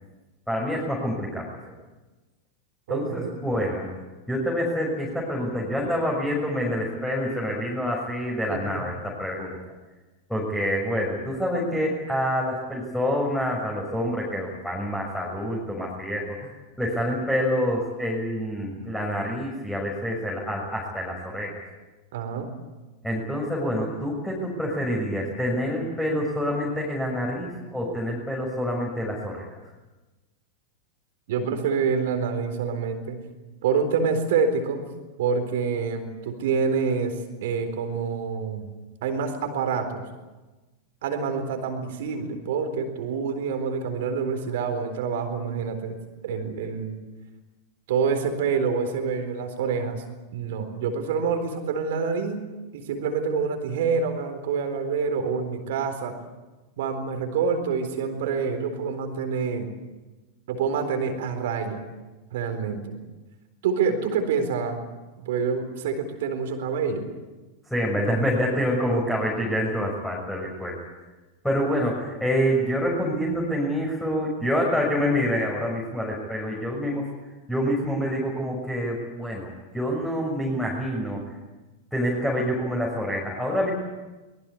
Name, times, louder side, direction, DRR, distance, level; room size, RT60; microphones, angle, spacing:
voice 1, 0.5-1.7 2.9-3.9 4.3-9.6 10.3-16.5 16.8-21.5 23.0-29.4 67.7-70.8 71.4-77.0 77.5-81.2 81.9-83.7, equal, 5° left, -3 dB, 6.4 m, -27 dB
voice 2, 2.9-3.3 8.5-8.8 22.1-22.5 31.3-33.2 33.6-34.8 35.2-38.7 39.0-40.1 41.0-46.0 46.2-47.0 47.9-50.0 50.3-52.5 52.7-56.1 56.8-59.7 60.5-61.8 62.3-63.0 63.6-64.8 65.3-67.1, right 5 dB, 55° right, 7 dB, 4.1 m, -27 dB
24.0 x 21.0 x 8.5 m, 1.2 s
figure-of-eight pair, 90°, 0 cm